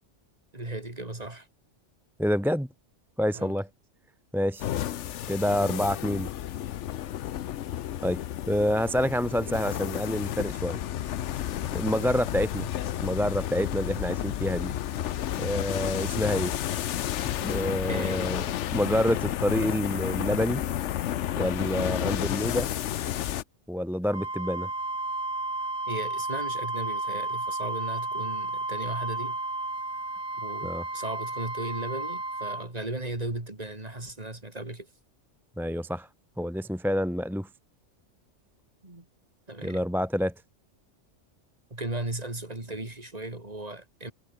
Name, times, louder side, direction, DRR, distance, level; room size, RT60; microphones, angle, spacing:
voice 1, 0.5-1.5 3.3-3.6 17.9-18.6 25.9-29.4 30.4-34.9 38.8-39.1 39.5-39.8 41.7-44.1, right 2 dB, 30° right, 3.2 m, -36 dB
voice 2, 2.2-2.7 3.2-3.7 4.3-4.7 5.3-6.3 8.0-8.2 8.5-10.8 11.7-12.7 13.0-14.7 15.4-16.5 17.4-18.4 18.7-20.6 21.4-22.7 23.7-24.7 30.6-30.8 35.6-36.1 36.4-37.5 39.6-40.3, equal, ahead, 0.9 m, -27 dB
sound 1, 4.6-23.4, left 11 dB, 75° left, 1.0 m, -31 dB
Wind instrument woodwind instrument, 24.1-32.7, right 2 dB, 60° right, 4.1 m, -32 dB
omnidirectional pair, 1.3 m